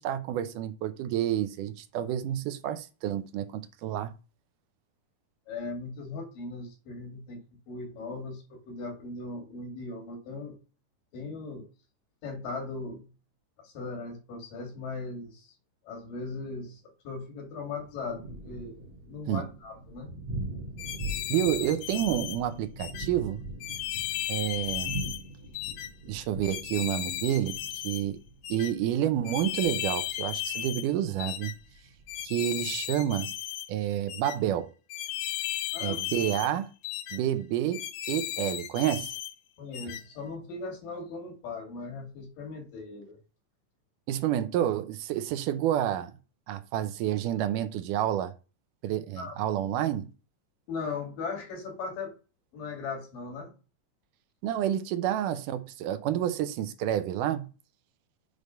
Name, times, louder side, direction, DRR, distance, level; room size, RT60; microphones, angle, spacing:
voice 1, 0.0-4.1 19.3-19.5 21.3-23.4 24.3-25.0 26.1-28.2 28.5-31.5 32.2-33.3 33.7-34.7 35.8-36.7 37.1-37.8 38.1-39.1 44.1-46.1 46.5-48.3 48.8-50.1 54.4-57.5, right 11 dB, 80° right, 2.2 m, -29 dB
voice 2, 5.5-10.6 11.1-11.7 12.2-13.1 13.6-15.5 15.8-18.8 19.1-20.1 35.7-36.0 39.6-43.2 49.2-49.5 50.7-52.2 52.5-53.5, left 3 dB, 90° left, 3.9 m, -38 dB
Thunder, 17.8-33.1, right 1 dB, 60° right, 2.1 m, -42 dB
sound 1, 20.8-22.4 22.8-23.1 23.6-25.2 25.5-25.9 26.4-28.0 28.4-28.7 29.2-30.9 31.2-31.5 32.1-33.7 34.1-34.4 34.9-36.5 36.8-37.2 37.7-39.3 39.7-40.0, left 13 dB, 75° left, 1.6 m, -35 dB
7.9 x 3.4 x 5.2 m
omnidirectional pair, 3.7 m